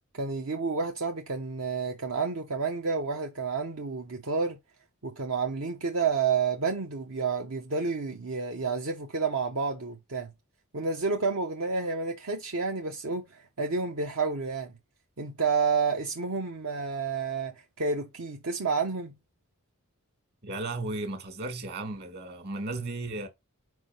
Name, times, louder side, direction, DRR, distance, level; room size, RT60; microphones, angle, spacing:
voice 1, 0.1-4.6 5.0-10.3 10.7-14.7 15.2-19.1, right 4 dB, 65° right, 0.9 m, -30 dB
voice 2, 20.4-23.3, right 2 dB, 45° right, 2.0 m, -35 dB
4.8 x 4.7 x 5.4 m
head